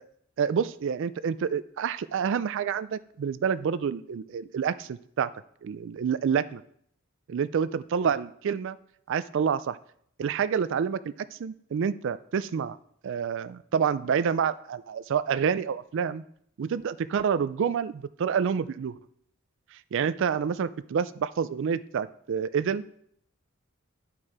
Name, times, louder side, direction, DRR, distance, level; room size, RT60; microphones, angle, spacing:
voice 1, 0.4-5.3 5.6-6.6 7.3-8.8 9.1-9.8 10.2-11.0 11.3-12.8 13.0-16.2 16.6-19.0 19.7-22.8, right 7 dB, 60° right, 15 dB, 0.3 m, -28 dB
11.0 x 4.4 x 4.8 m, 0.67 s
head